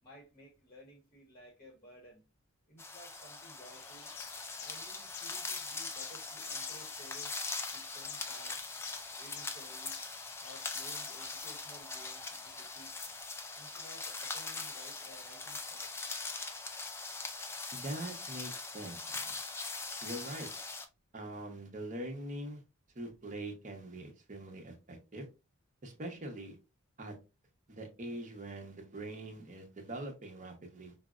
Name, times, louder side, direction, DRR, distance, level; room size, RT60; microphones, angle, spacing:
voice 1, 0.0-2.2 2.7-4.1 4.6-7.4 7.7-8.6 9.1-10.0 10.4-13.1 13.5-16.0, equal, 30° left, 0.9 m, -56 dB
sound 1, 2.8-20.8, left 3 dB, 10° left, 0.3 m, -41 dB
sound 2, 3.6-13.2, left 10 dB, 90° left, 0.4 m, -52 dB
voice 2, 17.7-19.4 20.0-20.5 21.1-22.6 22.9-25.3 25.8-26.6 27.0-27.1 27.7-30.9, right 1 dB, 40° right, 0.8 m, -43 dB
4.7 x 2.0 x 2.4 m
head